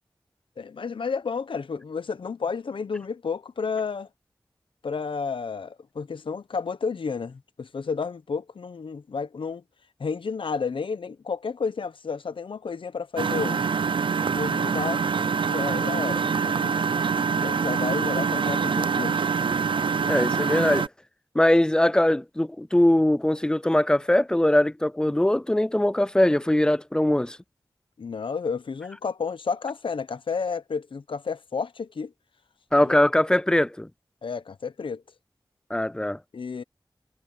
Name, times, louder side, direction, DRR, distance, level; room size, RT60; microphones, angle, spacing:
voice 1, 0.6-4.1 4.8-9.6 10.0-13.6 14.3-15.0 15.4-16.8 17.4-19.2 28.0-32.1 32.8-32.9 34.2-35.0 36.3-36.6, left 5 dB, 80° left, 0.9 m, -31 dB
Engine, 13.2-20.9, right 6 dB, 75° right, 0.5 m, -25 dB
voice 2, 20.0-20.9 21.3-27.4 32.7-33.9 35.7-36.2, left 1 dB, 10° left, 0.4 m, -21 dB
wide cardioid pair, 75°, 9 cm